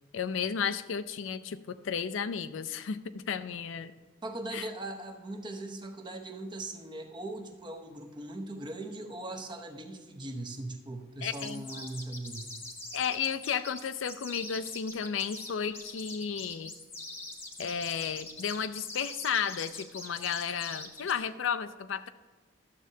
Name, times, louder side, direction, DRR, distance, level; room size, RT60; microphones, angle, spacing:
voice 1, 0.1-3.9 4.5-4.7 11.2-11.6 12.9-16.7 17.6-22.1, left 7 dB, 85° left, 12 dB, 0.4 m, -33 dB
voice 2, 4.2-12.5, right 2 dB, 25° right, 5 dB, 0.7 m, -40 dB
sound 1, 11.3-21.2, left 2 dB, 15° left, 0.9 m, -43 dB
12.5 x 7.4 x 2.7 m, 1.3 s
head